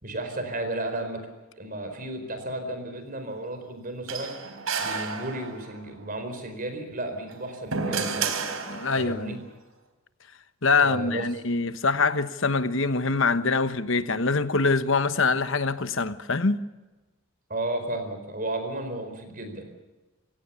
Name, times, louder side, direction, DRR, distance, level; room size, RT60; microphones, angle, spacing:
voice 1, 0.0-1.2 1.6-4.3 4.8-8.4 8.9-9.4 10.8-11.3 17.5-19.7, right 1 dB, 40° right, 4.6 m, -33 dB
sound 1, 4.1-5.8 7.2-9.2, right 5 dB, 80° right, 3.5 m, -31 dB
voice 2, 8.7-9.3 10.6-16.6, left 4 dB, 60° left, 1.2 m, -24 dB
28.0 x 17.0 x 7.0 m
head